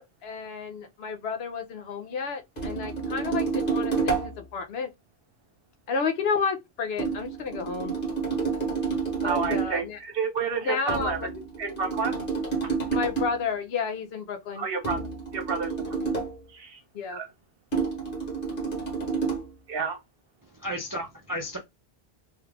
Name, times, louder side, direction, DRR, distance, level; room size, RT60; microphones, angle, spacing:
voice 1, 0.0-4.9 5.9-7.9 9.2-10.0 10.6-11.1 12.9-14.7 16.9-17.2, left 5 dB, 75° left, 0.9 m, -31 dB
sound 1, 2.6-4.4 7.0-9.8 10.9-13.4 14.8-16.4 17.7-19.5, right 5 dB, 55° left, 1.5 m, -29 dB
voice 2, 9.2-12.1 14.6-15.0 15.3-15.9 16.5-16.8 17.1-17.3 19.7-20.0, right 5 dB, 65° right, 1.0 m, -30 dB
voice 3, 20.5-21.6, equal, 30° right, 0.4 m, -33 dB
3.1 x 2.4 x 3.3 m
omnidirectional pair, 1.1 m